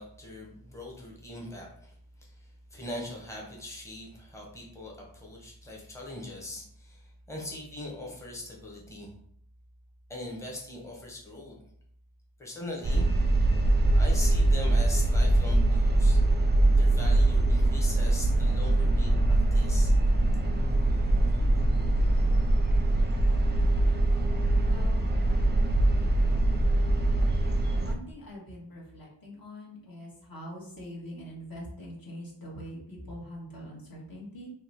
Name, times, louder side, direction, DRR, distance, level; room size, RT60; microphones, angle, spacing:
voice 1, 0.0-9.1 10.1-11.6 12.4-13.1 13.9-16.3 16.7-19.9, left 1 dB, 5° left, -2 dB, 0.9 m, -41 dB
sound 1, 12.8-27.9, right 2 dB, 25° right, 0.5 m, -23 dB
voice 2, 24.6-25.0 27.8-34.5, equal, 50° left, -4 dB, 1.4 m, -43 dB
2.9 x 2.2 x 4.0 m, 0.65 s
wide cardioid pair, 60°, 44 cm